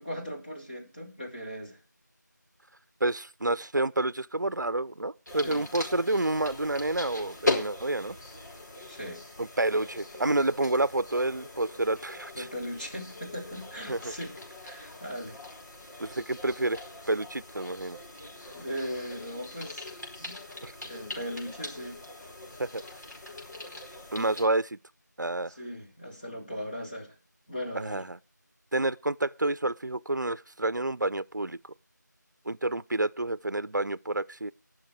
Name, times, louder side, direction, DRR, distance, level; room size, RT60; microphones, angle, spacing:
voice 1, 0.0-1.8 5.4-5.7 8.9-9.2 12.3-14.3 14.6-15.4 18.5-20.4 20.8-22.0 25.6-27.1 27.5-28.0, equal, 30° left, 3.2 m, -38 dB
voice 2, 3.0-8.2 9.4-12.5 13.9-14.1 16.0-18.0 20.6-20.7 22.6-22.8 24.1-24.8 25.2-25.5 27.7-28.2 28.7-31.6 32.5-34.5, right 2 dB, 70° right, 0.7 m, -29 dB
sound 1, 5.3-24.4, left 2 dB, 60° left, 4.8 m, -40 dB
19.0 x 6.4 x 4.7 m
figure-of-eight pair, 175°, 10 cm